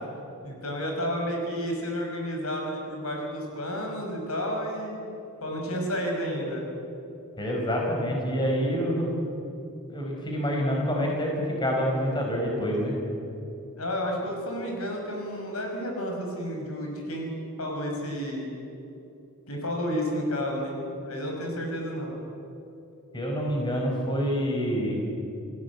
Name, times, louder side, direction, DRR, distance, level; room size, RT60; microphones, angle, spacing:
voice 1, 0.4-5.0 5.4-6.6 13.8-17.3 17.6-18.5 19.5-22.1, equal, 80° left, 1 dB, 5.9 m, -31 dB
voice 2, 7.4-9.1 9.9-13.0 23.1-25.1, equal, 20° left, -1 dB, 5.1 m, -27 dB
29.0 x 17.0 x 8.5 m, 2.8 s
head